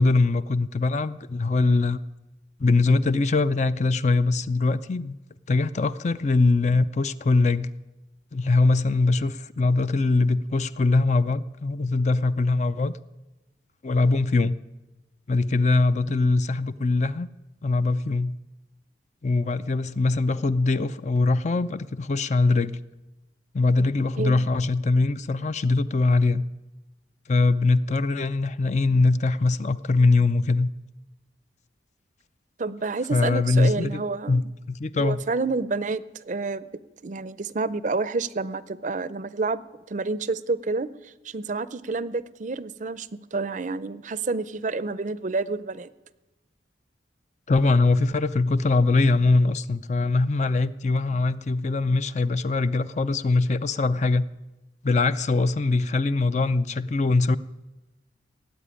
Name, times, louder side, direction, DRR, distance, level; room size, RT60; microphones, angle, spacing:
voice 1, 0.0-2.0 2.6-5.2 5.5-7.7 8.3-12.9 13.8-14.6 15.3-17.3 17.6-18.4 19.2-22.8 23.5-26.4 27.3-30.7 33.1-34.0 34.3-35.2 47.5-54.3 54.8-57.4, left 3 dB, 40° left, 13 dB, 0.4 m, -22 dB
voice 2, 32.6-34.4 35.0-36.7 37.0-39.6 39.9-45.9, right 3 dB, 45° right, 16 dB, 0.5 m, -29 dB
17.5 x 8.2 x 10.0 m, 1.0 s
head